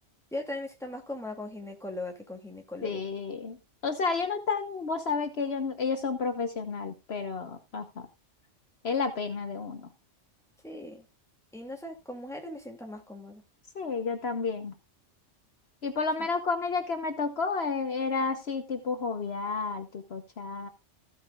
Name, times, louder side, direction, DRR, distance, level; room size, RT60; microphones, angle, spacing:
voice 1, 0.3-3.0 10.6-11.0 11.5-13.4, left 2 dB, ahead, 2.4 m, -39 dB
voice 2, 2.8-3.6 3.8-8.1 8.8-9.9 13.7-14.7 15.8-20.7, left 4 dB, 60° left, 1.3 m, -31 dB
15.0 x 8.8 x 2.4 m
omnidirectional pair, 1.2 m